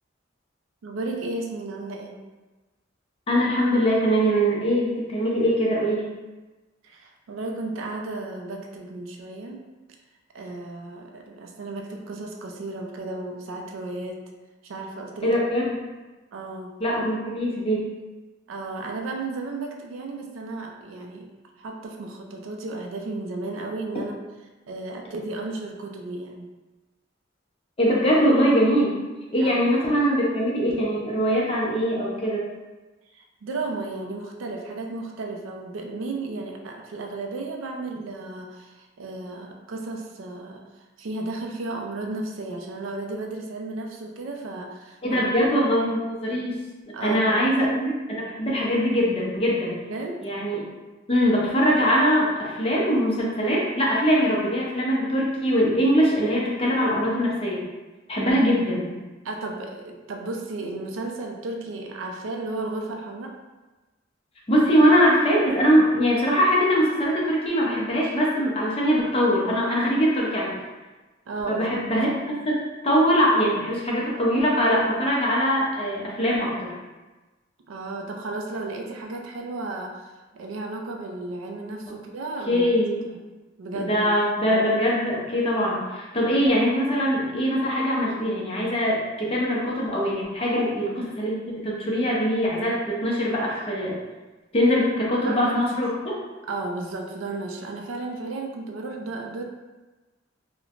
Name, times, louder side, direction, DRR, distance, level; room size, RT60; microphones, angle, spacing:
voice 1, 0.8-2.1 6.8-9.6 10.3-14.2 14.6-15.4 16.3-16.7 18.5-21.3 21.6-24.1 24.7-26.5 29.4-29.5 33.1-40.6 41.0-45.4 46.9-47.4 49.9-50.2 59.2-63.3 71.3-71.7 77.7-82.7 83.6-84.1 84.5-84.7 90.5-90.6 95.2-95.5 96.5-99.4, right 2 dB, 90° right, 2 dB, 0.4 m, -34 dB
voice 2, 3.3-6.0 15.2-15.8 16.8-17.9 27.8-29.0 29.3-32.4 45.0-46.6 46.9-49.8 50.2-50.6 51.1-57.6 58.1-58.9 64.5-70.6 71.5-76.7 81.9-82.0 82.5-83.0 83.7-90.9 91.2-91.3 91.6-94.0 94.5-96.1, equal, 30° left, -4 dB, 0.6 m, -22 dB
3.1 x 2.1 x 2.4 m, 1.2 s
head